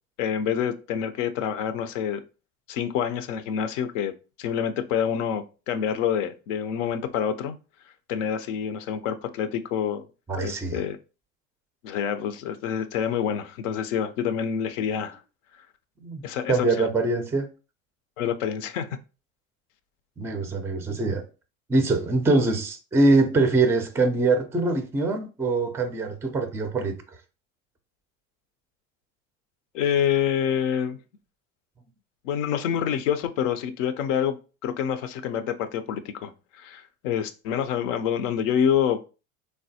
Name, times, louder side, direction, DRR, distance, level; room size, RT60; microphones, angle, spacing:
voice 1, 0.2-2.2 2.7-4.1 4.4-7.6 8.1-10.1 10.4-11.0 11.8-15.2 16.2-16.9 18.2-18.9 29.7-31.0 32.2-34.4 34.6-39.1, left 8 dB, 70° left, 0.5 m, -27 dB
voice 2, 10.3-10.8 16.0-16.2 16.5-17.5 20.2-21.2 21.7-27.0, right 3 dB, 5° right, 0.4 m, -23 dB
3.2 x 2.1 x 2.7 m
hypercardioid pair, 75°, 39 cm